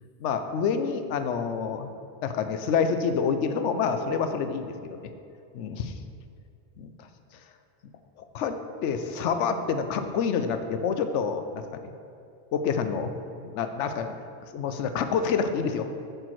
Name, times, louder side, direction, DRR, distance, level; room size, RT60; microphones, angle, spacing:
voice 1, 0.2-1.9 2.2-5.0 5.5-5.9 6.8-6.9 8.3-8.6 8.8-11.8 12.5-13.2 13.4-14.1 14.5-15.9, left 6 dB, 85° left, 8 dB, 0.9 m, -27 dB
6.8 x 5.9 x 4.5 m, 2.5 s
omnidirectional pair, 1.2 m